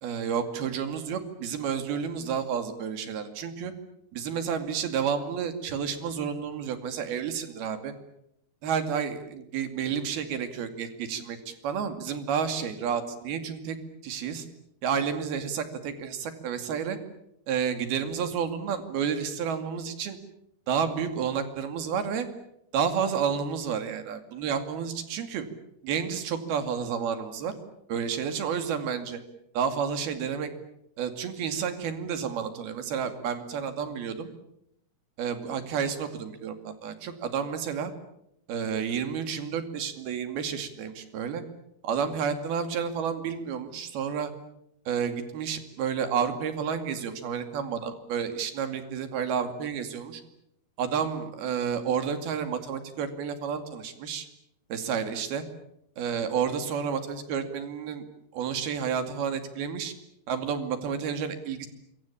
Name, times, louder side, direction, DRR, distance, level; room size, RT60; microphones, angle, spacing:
voice 1, 0.0-3.7 4.1-7.9 8.6-13.8 14.0-14.5 14.8-17.0 17.5-20.2 20.7-22.3 22.7-25.5 25.8-27.5 27.9-29.2 29.5-30.5 31.0-34.3 35.2-37.9 38.5-41.4 41.8-44.3 44.9-50.2 50.8-54.3 54.7-55.4 56.0-58.1 58.3-59.9 60.3-61.7, right 7 dB, 70° right, 8 dB, 4.3 m, -30 dB
27.0 x 23.0 x 8.7 m, 0.78 s
omnidirectional pair, 4.6 m